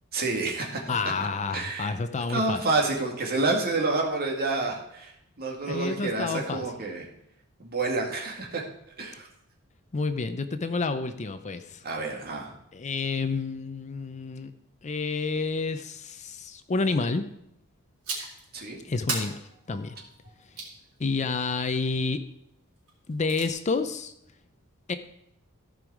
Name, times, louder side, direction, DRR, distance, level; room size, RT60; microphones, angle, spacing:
voice 1, 0.1-0.8 1.5-1.9 2.3-5.1 5.4-7.1 7.6-8.6 9.0-9.3 11.8-12.5 18.5-18.8, right 3 dB, 45° right, 0 dB, 2.1 m, -28 dB
voice 2, 0.9-2.6 5.7-6.6 9.9-11.8 12.7-14.5 14.8-17.3 18.9-19.4 19.7-19.9 21.0-22.2 23.1-24.1 24.9-25.0, left 4 dB, 35° left, 9 dB, 0.5 m, -29 dB
sound 1, 18.0-18.5 19.1-20.8 22.9-23.5, right 3 dB, 80° right, 3.9 m, -35 dB
15.0 x 5.4 x 4.8 m, 0.79 s
head